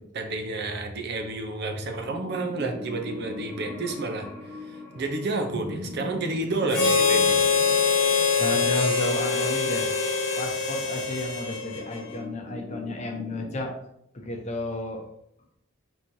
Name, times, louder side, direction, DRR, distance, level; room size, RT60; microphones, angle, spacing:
voice 1, 0.1-4.3 4.6-7.5 8.2-8.3, right 2 dB, 55° right, 4 dB, 0.6 m, -30 dB
sound 1, 2.0-13.6, left 1 dB, 15° left, 1.3 m, -40 dB
Harmonica, 6.7-12.2, left 4 dB, 70° left, 0.9 m, -24 dB
voice 2, 8.4-9.9 10.4-13.7 14.1-15.0, left 1 dB, 35° left, 2 dB, 0.7 m, -32 dB
4.5 x 3.7 x 2.7 m, 0.75 s
head